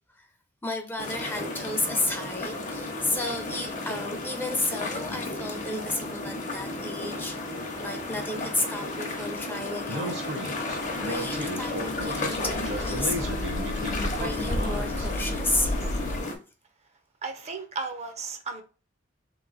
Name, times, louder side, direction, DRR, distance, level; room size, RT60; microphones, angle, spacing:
voice 1, 0.6-7.4 7.8-10.2 11.0-13.5 14.2-16.1, left 2 dB, 10° left, 0.5 m, -32 dB
sound 1, 1.0-16.3, left 2 dB, 40° left, 0.8 m, -33 dB
Speech, 9.9-15.1, right 1 dB, 65° right, 0.9 m, -35 dB
sound 2, 10.6-16.2, left 1 dB, 75° left, 0.5 m, -34 dB
voice 2, 17.2-18.6, right 4 dB, 35° right, 0.5 m, -35 dB
3.4 x 3.0 x 3.8 m
head